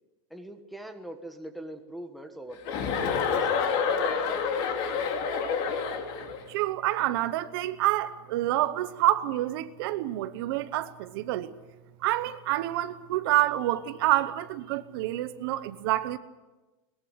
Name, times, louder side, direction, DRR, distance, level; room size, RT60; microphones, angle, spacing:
voice 1, 0.3-4.4, right 1 dB, ahead, 1.3 m, -42 dB
Chuckle chortle, 2.6-6.4, left 6 dB, 40° left, 2.9 m, -28 dB
voice 2, 6.5-11.5 12.0-16.2, right 15 dB, 45° right, 0.9 m, -27 dB
22.0 x 21.0 x 8.1 m
supercardioid pair, 180°, 17 cm